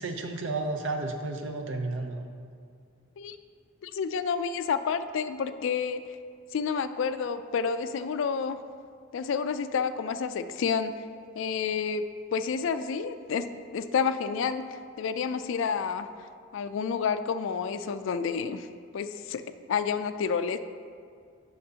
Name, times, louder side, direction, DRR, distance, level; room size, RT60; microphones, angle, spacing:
voice 1, 0.0-2.2, right 2 dB, 65° right, 4 dB, 0.6 m, -32 dB
voice 2, 3.8-6.0 6.5-8.6 9.1-10.9 11.3-12.0 12.3-16.1 16.5-18.7 18.9-19.4 19.7-20.6, left 6 dB, 65° left, 11 dB, 0.3 m, -29 dB
9.2 x 6.4 x 2.8 m, 2.2 s
head